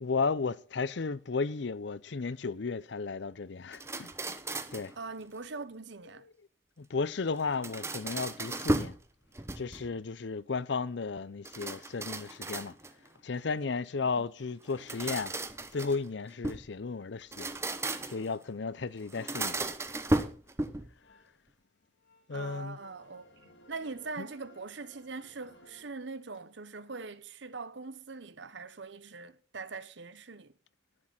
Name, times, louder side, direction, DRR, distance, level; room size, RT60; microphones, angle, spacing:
voice 1, 0.0-4.1 4.7-4.9 6.8-8.9 9.6-12.7 13.2-15.3 15.7-17.5 18.1-19.6 22.3-22.8 24.2-24.3, left 4 dB, 65° left, 0.6 m, -34 dB
sound 1, 3.7-4.9 7.4-9.0 9.3-10.0 11.4-13.1 14.6-16.7 17.2-18.3 19.1-20.9, right 2 dB, 15° right, 0.8 m, -35 dB
voice 2, 5.0-6.3 14.2-14.3 22.3-23.3 23.7-30.5, right 4 dB, 70° right, 0.9 m, -42 dB
sound 2, 20.4-20.5 20.7-21.3 22.0-22.3 22.7-25.8, left 1 dB, 90° left, 4.4 m, -59 dB
11.0 x 9.9 x 5.6 m
head